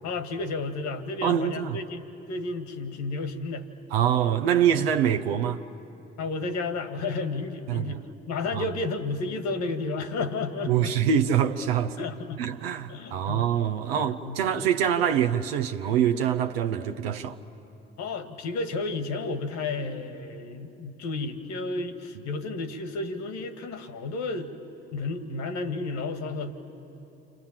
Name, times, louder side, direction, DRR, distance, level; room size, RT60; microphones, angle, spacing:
voice 1, 0.0-3.7 6.2-10.9 12.0-12.4 12.9-13.5 14.0-14.4 18.0-24.5 24.9-26.5, left 3 dB, 65° left, 1.8 m, -32 dB
voice 2, 1.2-1.8 3.9-5.6 7.7-8.0 8.5-8.7 10.7-12.0 12.4-17.4, right 9 dB, 85° right, 0.7 m, -25 dB
29.0 x 25.0 x 7.3 m
hypercardioid pair, 50°, 30 cm